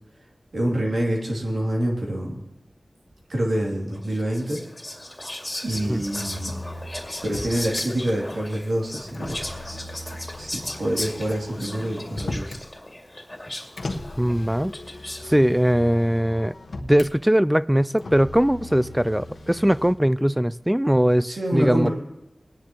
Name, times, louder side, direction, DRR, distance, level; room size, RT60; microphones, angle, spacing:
voice 1, 0.5-2.4 3.3-4.6 5.6-6.5 7.2-9.4 10.4-12.5 21.3-21.9, right 1 dB, 85° right, 2.7 m, -26 dB
Whispering, 4.0-15.3, left 1 dB, 25° left, 2.3 m, -36 dB
Motor vehicle (road), 5.7-7.9 9.1-12.7 13.8-17.1 18.0-19.9, left 2 dB, 85° left, 1.0 m, -38 dB
voice 2, 14.2-14.7 15.3-16.5 16.9-21.9, equal, 10° right, 0.3 m, -20 dB
20.5 x 10.5 x 3.0 m
wide cardioid pair, 50°, 0 cm